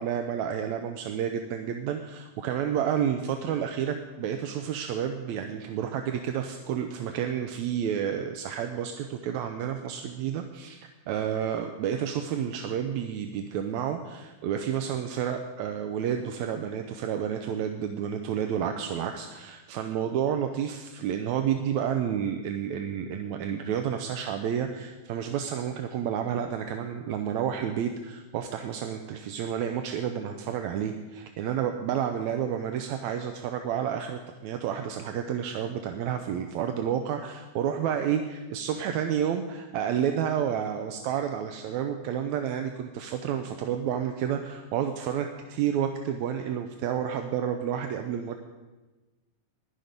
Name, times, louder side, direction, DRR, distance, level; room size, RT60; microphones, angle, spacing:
voice 1, 0.0-10.8 11.1-48.4, right 9 dB, 75° right, 5 dB, 1.8 m, -30 dB
15.5 x 11.0 x 5.2 m, 1.2 s
omnidirectional pair, 3.8 m